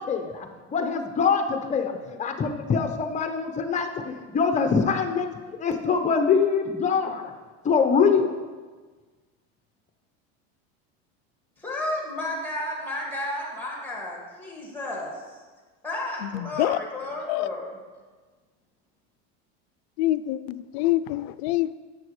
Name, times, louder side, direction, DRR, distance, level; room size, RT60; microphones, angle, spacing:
voice 1, 0.0-5.3 5.6-7.3 7.6-8.4, left 5 dB, 20° left, 5 dB, 0.8 m, -24 dB
voice 2, 11.6-15.4 15.8-17.6, left 1 dB, 5° left, -2 dB, 2.0 m, -32 dB
voice 3, 16.2-16.8 17.3-17.5 20.0-21.8, left 15 dB, 70° left, 14 dB, 0.5 m, -26 dB
11.0 x 7.6 x 3.2 m, 1.4 s
supercardioid pair, 140°, 34 cm